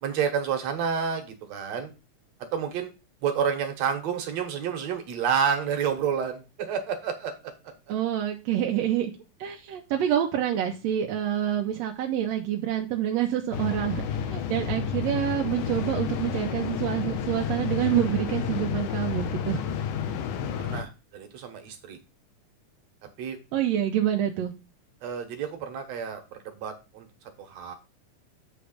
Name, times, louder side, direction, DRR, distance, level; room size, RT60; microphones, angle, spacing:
voice 1, 0.0-1.9 2.5-2.9 3.2-7.3 20.6-22.0 23.2-23.4 25.0-27.1 27.4-27.7, right 7 dB, 60° right, 5 dB, 2.1 m, -29 dB
voice 2, 7.9-9.1 9.4-19.6 23.5-24.5, right 11 dB, 75° right, 2 dB, 1.6 m, -27 dB
sound 1, 13.5-20.8, left 8 dB, 80° left, 2.2 m, -30 dB
7.9 x 3.3 x 6.4 m, 0.29 s
omnidirectional pair, 3.7 m